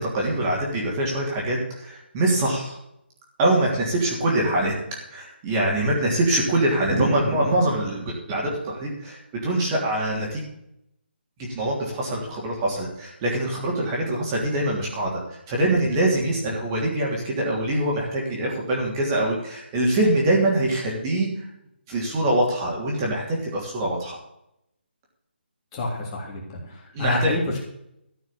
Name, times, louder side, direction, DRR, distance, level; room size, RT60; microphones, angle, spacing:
voice 1, 0.0-2.8 3.4-4.7 5.1-10.4 11.5-15.2 15.5-21.4 21.9-24.2 26.9-27.3, right 1 dB, 20° right, -2 dB, 3.1 m, -24 dB
voice 2, 25.7-27.6, left 2 dB, 20° left, -2 dB, 3.4 m, -28 dB
14.0 x 6.3 x 8.7 m, 0.79 s
hypercardioid pair, 165°, 6 cm